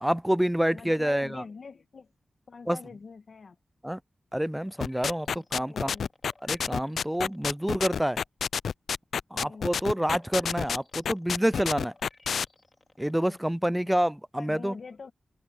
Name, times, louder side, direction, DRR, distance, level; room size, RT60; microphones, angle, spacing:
voice 1, 0.0-1.4 2.7-2.8 3.8-4.0 4.3-5.9 6.4-8.2 9.3-11.9 13.0-14.7, equal, 5° right, 0.3 m, -27 dB
voice 2, 0.7-2.1 2.5-3.6 5.3-6.1 9.3-9.7 13.2-13.9 14.4-15.1, left 5 dB, 65° left, 1.5 m, -45 dB
sound 1, 4.6-8.1 8.6-13.7 14.1-14.2, left 2 dB, 40° left, 3.7 m, -60 dB
sound 2, 4.8-12.5, left 7 dB, 80° left, 0.4 m, -29 dB
open air
cardioid pair, 45°, 0 cm